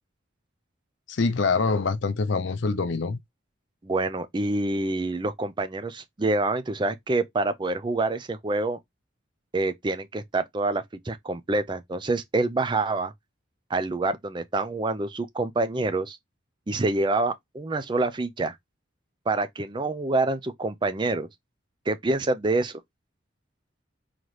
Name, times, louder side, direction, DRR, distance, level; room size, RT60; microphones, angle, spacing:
voice 1, 1.1-3.2, left 4 dB, 65° left, 0.5 m, -25 dB
voice 2, 3.8-8.8 9.5-13.1 13.7-16.2 16.7-18.6 19.3-21.3 21.9-22.8, right 2 dB, 25° right, 0.4 m, -26 dB
4.0 x 3.0 x 3.1 m
head